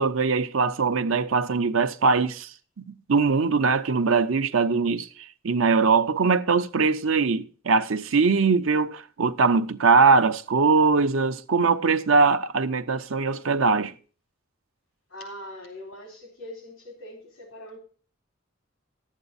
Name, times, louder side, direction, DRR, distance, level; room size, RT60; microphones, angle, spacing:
voice 1, 0.0-2.5 2.9-13.9, right 4 dB, 85° right, 0.7 m, -21 dB
voice 2, 15.1-17.8, left 1 dB, 70° left, 3.8 m, -42 dB
12.0 x 8.2 x 4.1 m
head